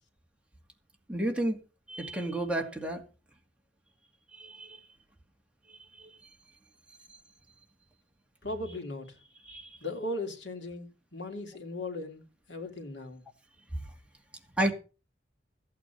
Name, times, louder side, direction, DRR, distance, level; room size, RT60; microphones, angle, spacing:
voice 1, 1.1-1.6 1.9-3.0 4.3-4.8 6.0-6.1 9.5-9.8 14.6-14.7, right 1 dB, 5° right, 2.3 m, -31 dB
voice 2, 8.4-9.2 9.8-13.2, left 2 dB, 75° left, 2.8 m, -38 dB
14.5 x 8.7 x 5.9 m
head